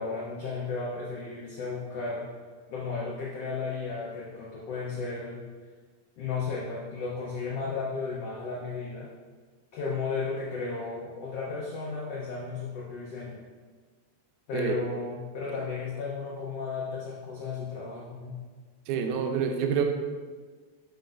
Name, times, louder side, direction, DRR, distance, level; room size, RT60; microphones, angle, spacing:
voice 1, 0.0-2.3 2.7-5.5 6.2-9.1 9.7-13.4 14.5-18.4, left 4 dB, 85° left, -4 dB, 1.3 m, -34 dB
voice 2, 18.9-19.8, right 7 dB, 85° right, 5 dB, 1.7 m, -27 dB
8.4 x 5.3 x 2.5 m, 1.5 s
omnidirectional pair, 3.9 m